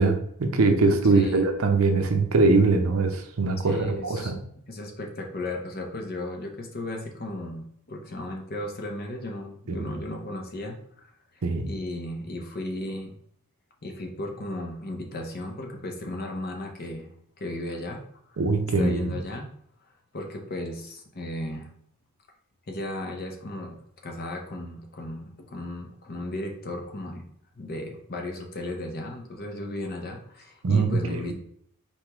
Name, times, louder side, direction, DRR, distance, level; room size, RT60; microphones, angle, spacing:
voice 1, 0.0-4.4 9.7-9.9 11.4-11.7 18.4-19.2 30.6-31.3, right 3 dB, 65° right, 5 dB, 0.6 m, -22 dB
voice 2, 1.1-1.5 3.6-4.3 4.6-11.1 11.7-13.1 13.8-18.4 18.8-19.5 20.1-21.7 22.7-27.2 27.6-31.3, left 1 dB, 45° left, 2 dB, 0.7 m, -35 dB
4.3 x 3.5 x 3.0 m, 0.66 s
head